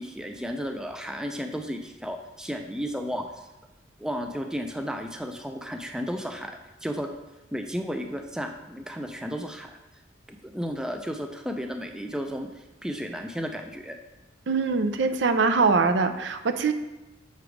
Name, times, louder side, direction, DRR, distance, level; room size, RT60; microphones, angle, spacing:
voice 1, 0.0-3.5 4.0-7.1 7.5-9.7 10.3-14.0, equal, 5° right, 4 dB, 0.3 m, -33 dB
voice 2, 14.5-16.7, right 4 dB, 65° right, 9 dB, 0.5 m, -23 dB
6.9 x 3.3 x 5.0 m, 1.0 s
head